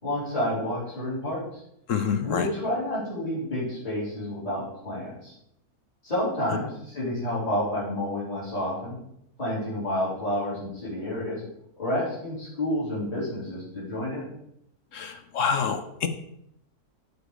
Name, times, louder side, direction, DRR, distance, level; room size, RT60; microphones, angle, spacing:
voice 1, 0.0-1.6 2.2-5.3 6.0-9.0 9.4-11.4 11.8-14.3, left 1 dB, 25° left, -9 dB, 4.0 m, -29 dB
voice 2, 1.9-2.5 14.9-16.1, left 6 dB, 60° left, 8 dB, 1.0 m, -27 dB
12.5 x 4.3 x 4.9 m, 0.75 s
omnidirectional pair, 1.6 m